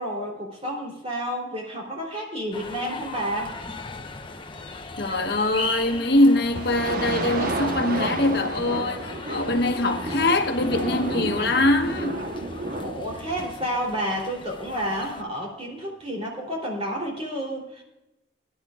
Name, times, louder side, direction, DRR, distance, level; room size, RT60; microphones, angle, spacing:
voice 1, 0.0-3.6 12.5-17.8, equal, 35° right, 3.3 m, -30 dB
sound 1, 2.5-15.2, left 3 dB, 30° left, 0.9 m, -38 dB
voice 2, 5.0-12.3, left 1 dB, 65° left, 1.2 m, -23 dB
sound 2, 6.5-13.5, right 2 dB, 55° right, 1.1 m, -31 dB
21.5 x 10.5 x 2.4 m
head